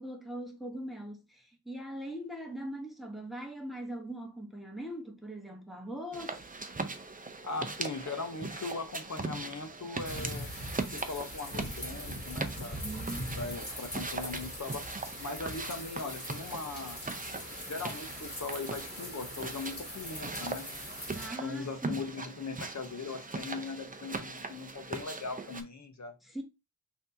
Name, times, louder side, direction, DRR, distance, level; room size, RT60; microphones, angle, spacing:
voice 1, 0.0-6.4 12.8-13.5 21.1-22.0 26.2-26.4, right 1 dB, ahead, 1.0 m, -41 dB
sound 1, 6.1-25.6, right 3 dB, 25° right, 0.6 m, -40 dB
voice 2, 7.4-10.5 10.9-12.8 13.4-14.8 15.2-17.0 17.7-20.7 21.4-26.1, left 3 dB, 50° left, 0.8 m, -39 dB
sound 2, 10.1-21.3, equal, 30° left, 2.1 m, -41 dB
5.8 x 2.8 x 2.7 m
wide cardioid pair, 90°, 37 cm